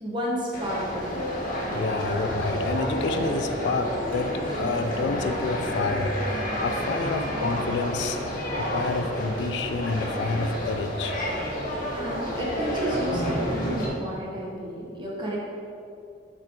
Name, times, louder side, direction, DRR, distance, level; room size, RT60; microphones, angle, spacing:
voice 1, 0.0-1.2 11.9-15.4, equal, 25° right, -4 dB, 1.1 m, -31 dB
sound 1, 0.5-13.9, equal, 45° left, 1.1 m, -30 dB
voice 2, 1.7-6.1 6.6-8.2 8.6-11.2, left 3 dB, 70° left, 7 dB, 0.4 m, -28 dB
6.1 x 3.4 x 5.1 m, 2.5 s
head